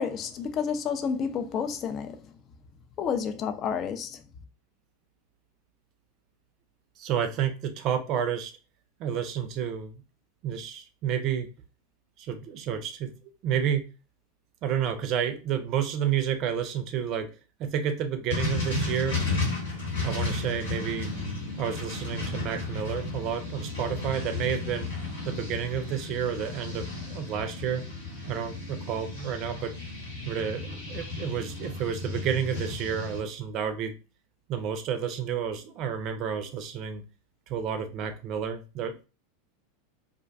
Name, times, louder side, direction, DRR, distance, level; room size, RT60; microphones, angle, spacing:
voice 1, 0.0-2.3 3.0-4.2, left 6 dB, 35° left, 0.3 m, -30 dB
voice 2, 7.0-8.5 9.0-10.0 10.4-11.5 12.2-13.1 13.4-13.8 14.6-17.3 17.6-19.2 20.0-21.1 21.6-24.9 25.2-27.8 28.3-29.7 30.2-33.9 34.5-37.0 37.5-39.1, right 8 dB, 45° right, 0.5 m, -30 dB
sound 1, 18.3-33.2, left 3 dB, 75° left, 1.0 m, -33 dB
2.4 x 2.1 x 2.4 m
figure-of-eight pair, 85°, 0 cm